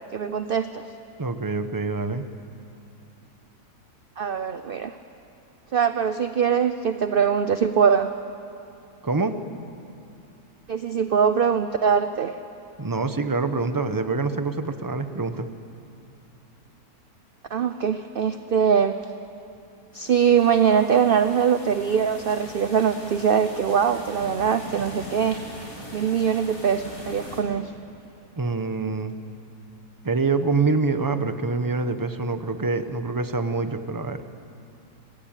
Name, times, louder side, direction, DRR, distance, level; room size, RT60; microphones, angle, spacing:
voice 1, 0.1-0.8 4.2-5.0 5.7-8.1 10.7-12.3 17.5-19.0 19.9-25.4 25.9-27.7, right 7 dB, 50° right, 10 dB, 0.7 m, -22 dB
voice 2, 1.2-2.3 9.0-9.3 12.8-15.5 28.4-29.1 30.0-34.2, right 3 dB, 15° right, 9 dB, 0.9 m, -25 dB
sound 1, 19.9-27.4, left 1 dB, 65° left, 5.4 m, -41 dB
26.5 x 20.5 x 9.1 m, 2.7 s
omnidirectional pair, 1.7 m